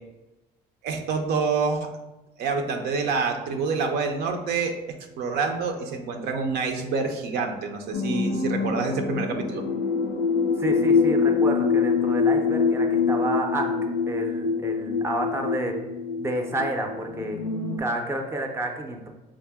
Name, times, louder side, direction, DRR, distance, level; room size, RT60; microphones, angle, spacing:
voice 1, 0.8-1.9 2.4-4.7 5.2-9.6, right 4 dB, 75° right, 4 dB, 0.5 m, -27 dB
sound 1, 7.9-17.8, left 5 dB, 75° left, 0.4 m, -25 dB
voice 2, 10.6-13.8 14.1-15.8 16.2-17.4 17.8-19.1, right 1 dB, 15° right, 3 dB, 0.5 m, -30 dB
4.6 x 2.0 x 3.4 m, 1.0 s
cardioid pair, 110°, 17 cm